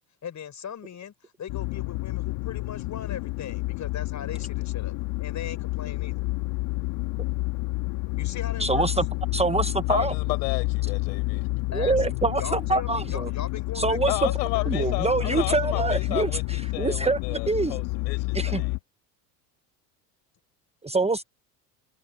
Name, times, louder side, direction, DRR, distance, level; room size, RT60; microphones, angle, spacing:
voice 1, 0.2-6.2 8.2-8.9 11.7-15.6, left 8 dB, 35° left, 6.7 m, -39 dB
sound 1, 1.5-18.8, left 22 dB, 65° left, 2.0 m, -29 dB
voice 2, 8.6-9.1 9.3-10.1 11.7-13.3 13.7-14.1 14.7-16.3 16.8-17.8 18.3-18.6 20.8-21.2, right 3 dB, 15° right, 1.2 m, -25 dB
voice 3, 9.9-11.5 14.0-18.8, left 21 dB, 80° left, 5.1 m, -33 dB
hypercardioid pair, 85°, 48 cm